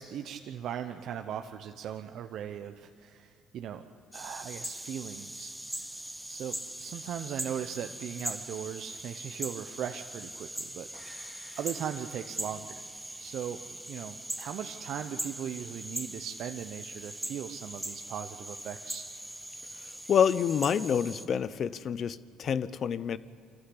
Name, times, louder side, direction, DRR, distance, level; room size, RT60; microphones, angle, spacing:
voice 1, 0.0-5.5 6.3-11.3 11.6-12.8 13.2-19.1, right 9 dB, 65° right, 7 dB, 0.8 m, -39 dB
sound 1, 4.1-21.3, right 1 dB, 5° right, 1.5 m, -41 dB
sound 2, 10.9-12.9 13.2-13.3, left 1 dB, 20° left, 3.3 m, -53 dB
voice 2, 20.1-23.2, left 8 dB, 55° left, 16 dB, 0.8 m, -27 dB
25.0 x 14.5 x 9.9 m, 2.6 s
supercardioid pair, 80°, 0 cm